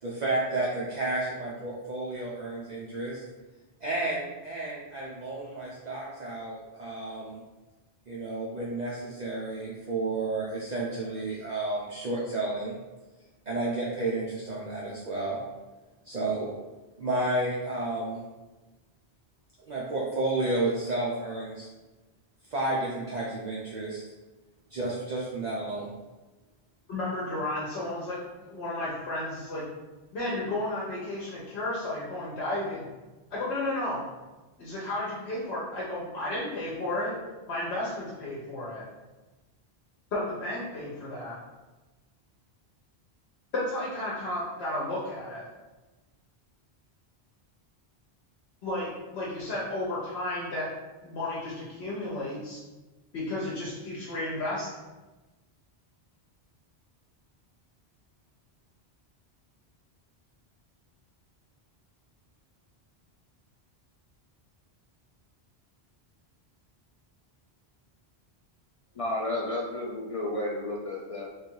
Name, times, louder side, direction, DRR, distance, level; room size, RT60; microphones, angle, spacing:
voice 1, 0.0-3.2 3.8-7.4 8.1-12.8 13.5-15.4 16.0-16.5 17.0-18.2 19.7-21.7 22.5-24.0 24.7-25.9, right 2 dB, 50° right, -5 dB, 0.7 m, -31 dB
voice 2, 26.9-29.7 30.1-32.9 33.3-34.0 34.6-37.2 37.5-38.8 40.1-41.4 43.5-45.5 48.6-50.7 51.0-52.6 53.1-54.7, left 1 dB, 80° left, -6 dB, 1.1 m, -33 dB
voice 3, 69.0-71.3, left 1 dB, 50° left, -2 dB, 0.4 m, -32 dB
3.2 x 2.6 x 4.4 m, 1.2 s
omnidirectional pair, 1.1 m